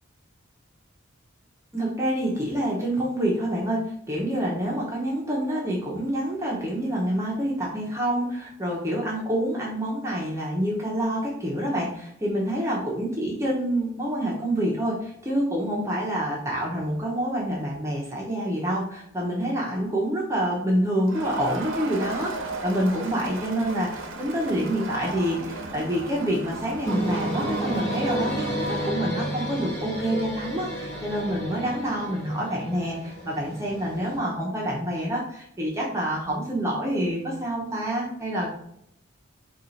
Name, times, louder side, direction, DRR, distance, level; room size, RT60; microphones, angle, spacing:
voice 1, 1.7-38.6, right 1 dB, 15° right, -3 dB, 0.7 m, -27 dB
Crowd, 21.1-29.0, right 2 dB, 70° right, 0.7 m, -36 dB
sound 1, 26.8-34.2, right 1 dB, 10° left, 1.2 m, -31 dB
4.4 x 2.4 x 4.0 m, 0.73 s
head